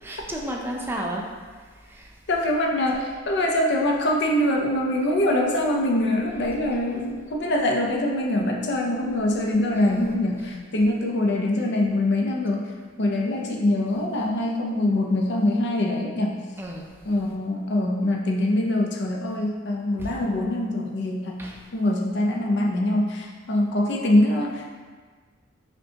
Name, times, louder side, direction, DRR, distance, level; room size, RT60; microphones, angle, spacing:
voice 1, 0.0-1.3 1.9-2.1 9.7-10.0 10.4-10.6 16.6-16.9 20.0-20.1 21.4-21.6, right 1 dB, 10° right, -1 dB, 0.4 m, -32 dB
voice 2, 2.3-12.6 13.0-16.4 17.0-21.4 21.7-24.8, left 1 dB, 60° left, 1 dB, 0.5 m, -24 dB
5.1 x 2.2 x 2.8 m, 1.5 s
head